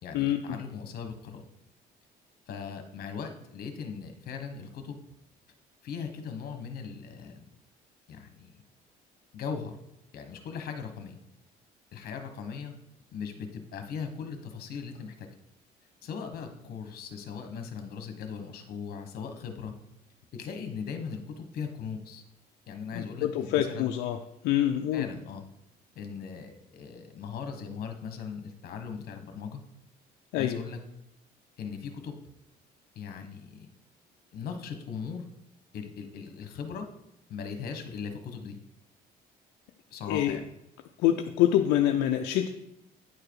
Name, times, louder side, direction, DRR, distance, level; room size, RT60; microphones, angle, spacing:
voice 1, 0.0-1.4 2.5-5.0 5.8-7.4 8.1-8.6 9.3-9.7 10.1-11.2 11.9-12.7 13.1-15.3 16.0-19.7 20.3-22.2 22.7-23.9 24.9-25.4 25.9-29.6 30.4-30.8 31.6-32.2 32.9-33.7 34.3-35.2 35.7-36.9 37.3-38.6 39.9-40.5, left 6 dB, 65° left, 6 dB, 1.3 m, -39 dB
voice 2, 23.0-24.2 24.4-25.1 30.3-30.6 40.1-40.4 41.0-42.5, left 12 dB, 90° left, 5 dB, 0.5 m, -25 dB
9.5 x 4.8 x 4.8 m, 0.82 s
cardioid pair, 110°, 17 cm